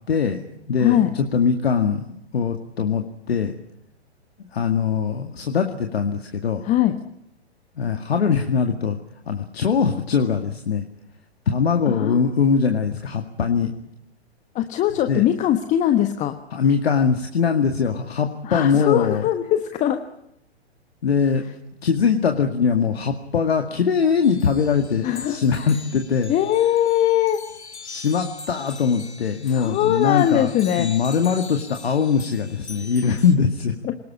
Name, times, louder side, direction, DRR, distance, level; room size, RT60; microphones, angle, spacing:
voice 1, 0.1-0.4 0.7-2.0 2.3-3.5 4.5-6.6 7.8-9.0 9.3-10.9 11.5-13.7 15.1-15.2 16.5-19.2 21.0-21.4 21.8-26.3 27.8-30.5 30.8-33.7, left 6 dB, 65° left, 5 dB, 2.2 m, -21 dB
voice 2, 0.8-1.1 6.6-7.0 11.9-12.2 14.5-16.4 18.4-20.0 25.0-25.4 26.3-27.4 29.5-30.9 33.0-33.2 33.8-33.9, left 11 dB, 20° left, 8 dB, 1.3 m, -21 dB
sound 1, 24.2-33.4, left 4 dB, 80° left, 2.2 m, -41 dB
27.5 x 19.5 x 8.7 m, 0.81 s
figure-of-eight pair, 115°, 33 cm